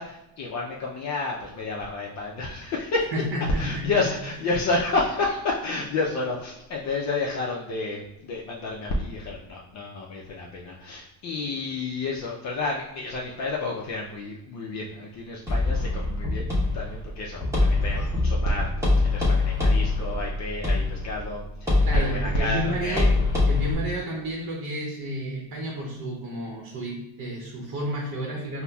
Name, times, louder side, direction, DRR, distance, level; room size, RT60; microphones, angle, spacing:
voice 1, 0.0-3.1 3.6-23.1, left 3 dB, 45° left, -3 dB, 0.4 m, -30 dB
voice 2, 3.1-4.1 21.8-28.6, equal, 60° right, -1 dB, 0.7 m, -31 dB
sound 1, 15.5-23.7, left 2 dB, 5° right, 0.9 m, -24 dB
5.4 x 2.0 x 2.2 m, 0.90 s
cardioid pair, 145°, 39 cm